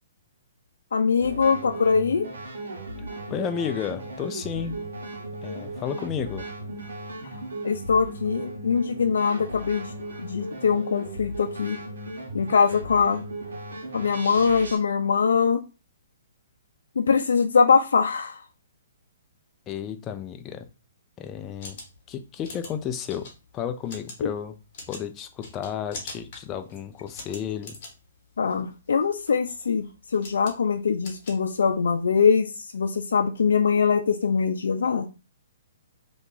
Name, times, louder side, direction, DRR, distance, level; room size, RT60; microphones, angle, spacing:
voice 1, 0.9-2.2 7.3-9.9 10.2-11.8 12.3-13.2 13.9-15.6 17.0-18.4 24.2-24.3 28.4-35.1, left 5 dB, 85° left, 6 dB, 0.4 m, -23 dB
sound 1, 1.2-14.8, right 2 dB, 80° right, 1.2 m, -36 dB
voice 2, 3.3-4.8 5.4-6.5 19.7-20.6 21.2-21.8 22.1-24.5 24.9-27.8, left 8 dB, 15° left, 7 dB, 0.3 m, -32 dB
sound 2, 21.4-32.0, left 3 dB, 35° left, 1.2 m, -45 dB
2.8 x 2.5 x 3.7 m, 0.30 s
hypercardioid pair, 165°, 0 cm